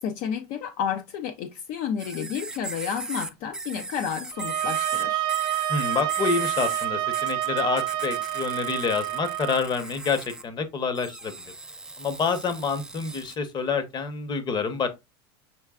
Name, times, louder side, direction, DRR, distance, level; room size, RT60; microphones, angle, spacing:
voice 1, 0.0-5.3, left 8 dB, 55° left, 0.6 m, -31 dB
sound 1, 2.0-6.9 7.1-10.4 11.0-13.4, right 2 dB, 5° right, 0.3 m, -38 dB
sound 2, 4.3-9.7, right 14 dB, 65° right, 0.8 m, -28 dB
voice 2, 5.7-11.3 12.0-14.9, left 5 dB, 30° left, 0.9 m, -27 dB
6.1 x 3.2 x 2.3 m
supercardioid pair, 130°, 15 cm